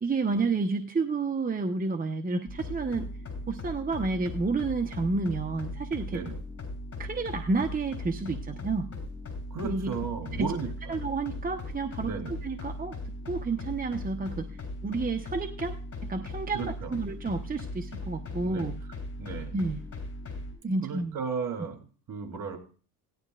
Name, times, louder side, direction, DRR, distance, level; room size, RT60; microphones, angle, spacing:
voice 1, 0.0-3.1 3.5-6.2 7.0-8.9 9.6-9.9 10.4-10.5 10.9-14.5 14.8-15.8 16.1-18.7 19.5-19.8 20.6-21.2, right 3 dB, 25° right, 5 dB, 1.0 m, -30 dB
sound 1, 2.5-20.5, left 2 dB, 40° left, 7.2 m, -38 dB
voice 2, 9.5-10.9 12.0-12.3 16.5-16.9 18.4-18.7 19.2-19.6 20.8-22.6, right 5 dB, 60° right, 3 dB, 3.3 m, -35 dB
17.5 x 11.5 x 2.5 m, 0.38 s
cardioid pair, 90°, 36 cm